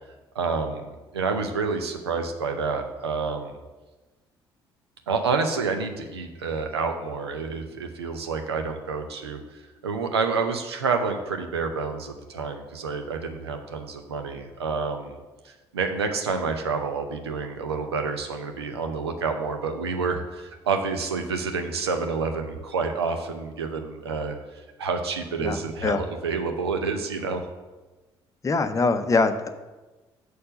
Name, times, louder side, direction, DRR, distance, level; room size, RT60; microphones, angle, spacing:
voice 1, 0.3-0.8 1.1-3.5 5.1-15.1 15.4-24.4 24.8-27.5, right 4 dB, 80° right, 5 dB, 0.7 m, -28 dB
voice 2, 25.4-26.0 28.4-29.5, left 3 dB, 25° left, 9 dB, 0.6 m, -23 dB
6.6 x 4.4 x 6.6 m, 1.2 s
figure-of-eight pair, 50°, 13 cm